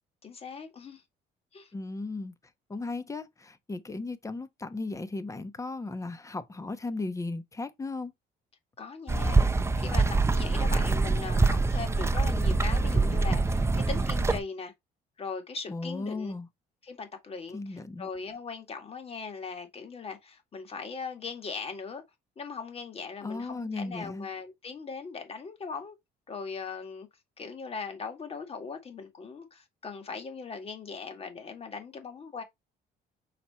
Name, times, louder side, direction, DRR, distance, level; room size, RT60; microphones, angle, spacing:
voice 1, 0.2-1.0 1.5-1.7 8.8-14.7 15.2-16.3 16.8-22.0 22.4-26.0 26.3-27.1 27.4-32.4, left 5 dB, 35° left, 2.0 m, -39 dB
voice 2, 1.7-2.3 2.7-8.1 15.7-16.5 17.5-18.1 23.2-24.3, left 3 dB, 20° left, 1.0 m, -36 dB
sound 1, 9.1-14.4, right 3 dB, 15° right, 0.7 m, -25 dB
6.0 x 4.3 x 4.3 m
cardioid pair, 110°, 17 cm